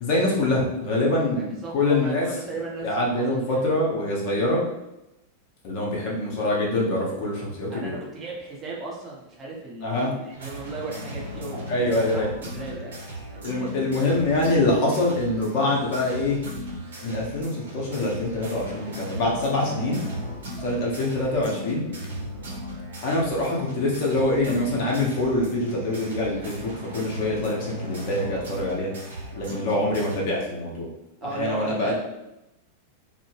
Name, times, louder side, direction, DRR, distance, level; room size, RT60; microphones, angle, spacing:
voice 1, 0.0-2.3 2.8-4.6 5.6-8.0 9.8-10.1 11.7-12.3 13.4-16.4 17.0-20.0 20.6-21.9 23.0-28.9 29.3-30.9 31.3-31.9, left 2 dB, 45° left, -2 dB, 0.7 m, -25 dB
voice 2, 1.4-3.6 7.7-13.0 13.6-14.1 31.2-31.9, right 3 dB, 20° right, -3 dB, 0.7 m, -36 dB
sound 1, 10.3-30.2, equal, 65° right, 0.7 m, -36 dB
2.1 x 2.0 x 3.1 m, 0.92 s
figure-of-eight pair, 90°, 0 cm